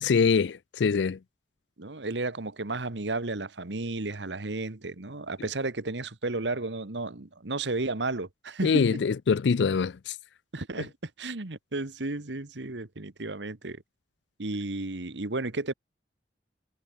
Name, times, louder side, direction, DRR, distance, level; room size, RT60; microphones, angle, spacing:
voice 1, 0.0-1.2 8.6-10.2, left 5 dB, 80° left, 0.4 m, -24 dB
voice 2, 1.8-9.0 10.5-13.8 14.4-15.7, right 2 dB, 90° right, 1.6 m, -33 dB
head